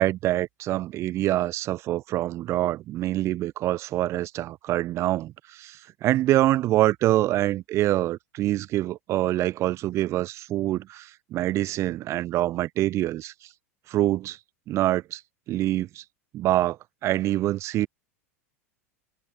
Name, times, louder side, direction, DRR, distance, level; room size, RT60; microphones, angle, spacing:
voice 1, 0.0-13.3 13.9-14.4 14.7-15.2 15.5-16.0 16.3-16.8 17.0-17.9, right 15 dB, 35° right, 0.7 m, -25 dB
figure-of-eight pair, 85°, 8 cm